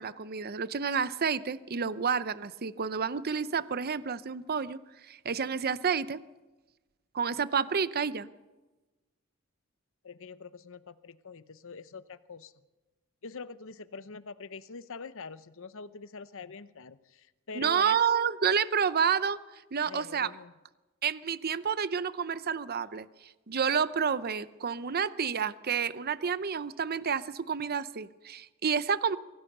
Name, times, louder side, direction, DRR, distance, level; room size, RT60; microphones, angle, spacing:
voice 1, 0.0-4.8 5.1-6.2 7.1-8.3 17.5-19.4 19.7-20.3 21.0-29.2, right 6 dB, 45° right, 15 dB, 0.7 m, -29 dB
voice 2, 10.0-12.5 13.2-18.0 19.9-20.5, left 4 dB, 65° left, 14 dB, 0.8 m, -44 dB
24.5 x 17.0 x 6.7 m, 1.1 s
head